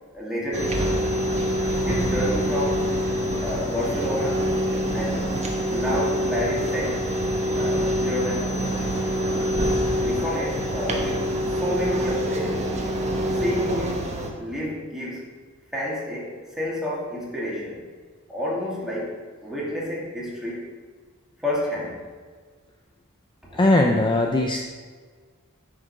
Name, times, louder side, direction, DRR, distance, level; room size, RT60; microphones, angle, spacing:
voice 1, 0.1-1.1 1.9-2.9 3.4-4.5 4.9-5.3 5.7-7.1 7.5-8.6 10.0-12.7 13.3-14.1 14.4-15.2 15.7-17.8 18.3-20.7 21.4-22.0 23.5-23.9, equal, ahead, -6 dB, 2.5 m, -30 dB
sound 1, 0.5-14.3, equal, 30° right, 1.3 m, -25 dB
voice 2, 23.6-24.6, left 2 dB, 20° left, 2 dB, 0.6 m, -19 dB
10.0 x 5.2 x 6.0 m, 1.5 s
head